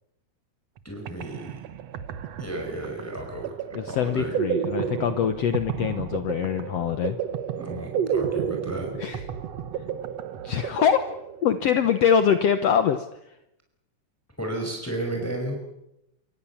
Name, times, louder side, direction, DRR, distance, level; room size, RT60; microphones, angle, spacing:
voice 1, 0.8-1.6 2.4-3.5 3.9-4.4 7.6-8.9 14.4-15.6, right 1 dB, 5° left, 2 dB, 5.2 m, -33 dB
sound 1, 0.8-11.7, right 8 dB, 60° right, 2.2 m, -31 dB
voice 2, 3.7-7.2 9.0-9.2 10.4-11.0 11.4-13.1, left 8 dB, 65° left, 9 dB, 2.0 m, -23 dB
27.5 x 25.5 x 7.3 m, 0.84 s
omnidirectional pair, 3.4 m